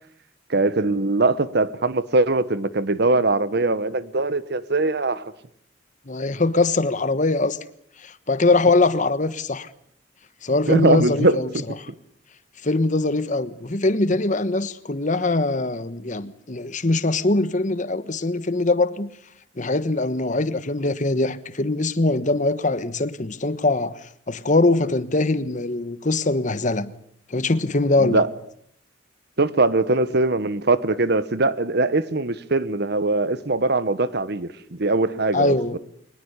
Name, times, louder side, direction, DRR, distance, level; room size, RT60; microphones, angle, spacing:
voice 1, 0.5-5.2 10.7-11.6 28.0-28.3 29.4-35.8, right 2 dB, 55° right, 1.2 m, -21 dB
voice 2, 6.1-7.6 8.0-9.7 10.4-11.5 12.6-19.1 19.6-24.0 24.3-26.9 27.3-28.2 35.3-35.7, left 2 dB, 40° left, 1.2 m, -22 dB
23.0 x 20.5 x 8.2 m
head